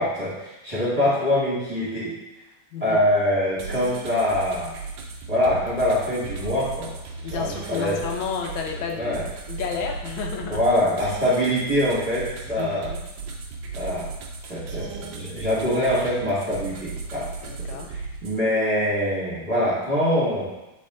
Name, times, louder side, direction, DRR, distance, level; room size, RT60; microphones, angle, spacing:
voice 1, 0.0-2.1 2.8-4.7 5.3-6.9 7.3-8.0 9.0-9.2 10.5-12.9 13.7-14.1 14.5-17.3 17.9-20.5, left 1 dB, 20° right, -9 dB, 1.6 m, -24 dB
sound 1, 3.6-18.4, right 4 dB, 80° right, 1.5 m, -36 dB
voice 2, 7.2-9.2 9.5-10.6 12.6-13.0 17.4-17.9, left 6 dB, 85° left, 3 dB, 1.5 m, -31 dB
7.6 x 3.5 x 3.7 m, 0.98 s
omnidirectional pair, 2.1 m